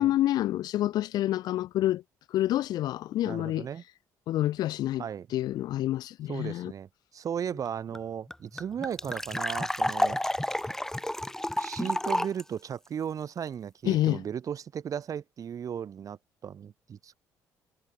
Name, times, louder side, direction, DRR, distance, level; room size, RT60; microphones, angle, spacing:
voice 1, 0.0-2.0 2.3-3.7 4.3-5.0 5.3-6.7 13.8-14.2, left 14 dB, 75° left, 2.0 m, -27 dB
voice 2, 3.3-3.8 5.0-5.3 6.3-10.2 11.6-17.1, right 8 dB, 55° right, 6.9 m, -36 dB
sound 1, 7.7-7.8 7.9-8.0 8.3-12.4, left 1 dB, 5° left, 2.8 m, -30 dB
supercardioid pair, 80°, 7 cm